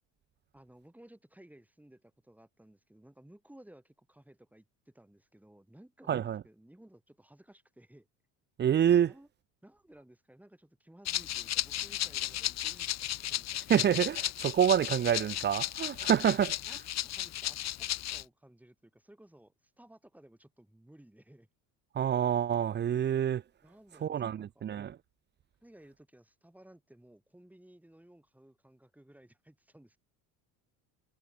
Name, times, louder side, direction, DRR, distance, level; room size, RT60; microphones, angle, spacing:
voice 1, 0.5-8.1 9.1-9.3 9.6-13.6 16.1-21.5 23.6-24.6 25.6-30.0, right 1 dB, 5° right, 3.3 m, -58 dB
voice 2, 6.1-6.4 8.6-9.1 13.7-16.5 21.9-23.4 24.0-25.0, right 9 dB, 25° right, 0.5 m, -27 dB
Rattle (instrument), 11.0-18.2, left 13 dB, 40° left, 0.8 m, -35 dB
supercardioid pair, 90°, 41 cm